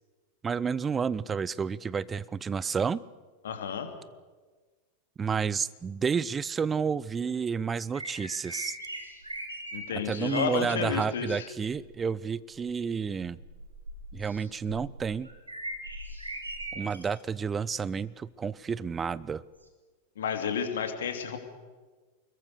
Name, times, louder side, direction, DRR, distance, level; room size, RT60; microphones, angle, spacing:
voice 1, 0.4-3.0 5.2-8.8 10.0-13.4 14.1-15.3 16.7-19.4, right 6 dB, 20° right, 20 dB, 0.6 m, -30 dB
voice 2, 3.4-3.9 9.7-11.5 20.2-21.4, left 7 dB, 60° left, 6 dB, 2.8 m, -31 dB
sound 1, 7.9-10.7 11.5-11.9 12.5-17.2 17.7-17.8 19.6-19.7, right 1 dB, 85° right, 3.4 m, -40 dB
24.5 x 22.0 x 6.7 m, 1.4 s
figure-of-eight pair, 90°, 0 cm